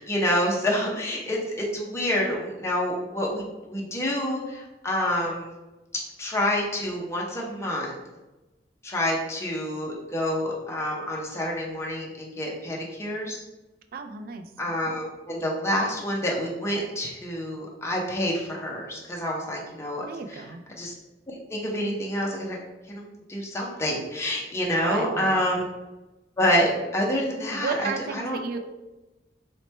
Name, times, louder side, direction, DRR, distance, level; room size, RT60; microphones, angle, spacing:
voice 1, 0.0-5.5 5.9-7.9 8.8-13.4 14.6-20.4 20.8-20.9 21.3-22.6 22.9-25.7 26.4-28.6, left 1 dB, 15° left, -2 dB, 0.5 m, -28 dB
voice 2, 13.9-14.5 20.1-20.6 24.7-25.4 27.5-28.6, right 5 dB, 55° right, 6 dB, 0.3 m, -32 dB
3.0 x 2.1 x 4.1 m, 1.1 s
head